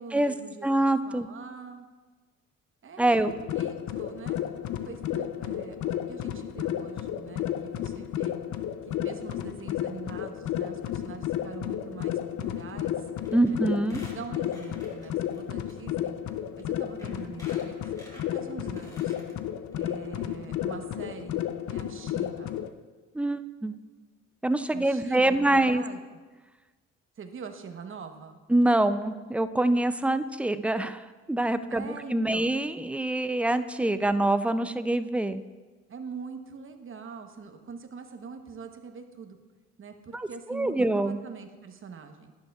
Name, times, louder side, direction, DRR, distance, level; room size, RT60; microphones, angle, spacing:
voice 1, 0.0-0.7 1.0-1.9 2.8-4.4 4.8-8.3 8.9-13.1 13.4-13.6 13.9-16.2 16.6-19.2 19.8-21.4 21.7-22.6 24.7-26.0 27.2-28.4 31.7-32.5 35.9-39.4 39.8-42.3, right 6 dB, 45° right, 7 dB, 0.9 m, -43 dB
voice 2, 0.6-1.3 3.0-3.3 13.3-14.0 23.1-23.7 24.4-25.8 28.5-31.0 31.3-35.4 40.1-41.2, right 1 dB, 5° right, 11 dB, 0.3 m, -25 dB
sound 1, 3.2-22.7, left 11 dB, 70° left, 0.6 m, -32 dB
Squeak, 13.2-13.5 13.8-15.4 15.7-15.8 16.6-16.7 17.0-19.3 19.7-19.8 20.0-20.1, left 1 dB, 10° left, 2.5 m, -50 dB
11.0 x 10.5 x 2.3 m, 1.3 s
cardioid pair, 90°, 30 cm